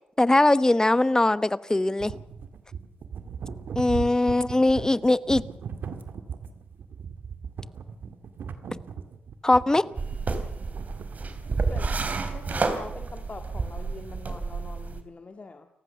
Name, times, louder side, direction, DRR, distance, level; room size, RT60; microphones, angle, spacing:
voice 1, 0.2-2.1 3.8-5.4 9.4-9.9, left 2 dB, 20° left, 1.1 m, -21 dB
sound 1, 2.0-13.1, right 6 dB, 70° right, 2.1 m, -38 dB
sound 2, 10.0-15.0, right 4 dB, 50° right, 3.3 m, -30 dB
voice 2, 12.3-15.7, left 3 dB, 40° left, 1.8 m, -43 dB
29.0 x 15.0 x 7.0 m
supercardioid pair, 45°, 4 cm